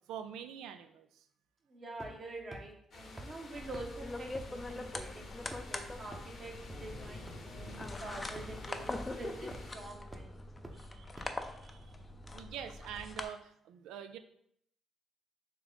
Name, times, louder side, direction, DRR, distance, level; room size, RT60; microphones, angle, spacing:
voice 1, 0.1-1.2 10.7-11.9 12.3-14.2, right 8 dB, 90° right, 10 dB, 0.3 m, -46 dB
voice 2, 1.7-5.3 5.7-6.5 6.8-10.3, right 2 dB, 45° right, 1 dB, 0.9 m, -46 dB
sound 1, 2.0-2.2 2.5-2.6 3.2-3.3 3.7-3.8 4.3-4.4 4.9-5.0 5.5-5.7 6.1-6.2 6.7-6.8 7.3-7.4 7.8-7.9 8.3-8.5 8.9-9.0 9.5-9.7 10.1-10.2 10.6-10.7 11.2-11.3, right 1 dB, 15° right, 0.7 m, -46 dB
sound 2, 2.9-9.7, left 2 dB, 55° left, 0.9 m, -50 dB
sound 3, 3.6-13.2, left 2 dB, 25° left, 0.4 m, -43 dB
3.6 x 3.0 x 4.0 m, 0.70 s
cardioid pair, 90°, 0 cm